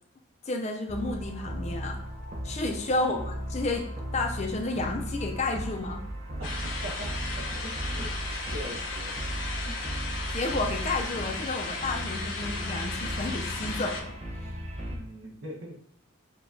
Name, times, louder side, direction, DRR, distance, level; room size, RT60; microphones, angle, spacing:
voice 1, 0.5-2.0 2.4-6.0 10.3-14.1, left 2 dB, 30° left, 3 dB, 0.4 m, -31 dB
sound 1, 0.9-15.0, right 1 dB, 30° right, 0.6 m, -36 dB
voice 2, 2.9-3.3 6.4-8.1 8.5-9.2 9.6-9.8 14.9-15.8, equal, 75° right, -2 dB, 1.0 m, -42 dB
sound 2, 6.4-14.0, left 3 dB, 70° left, 0.8 m, -36 dB
6.7 x 2.2 x 2.6 m, 0.70 s
head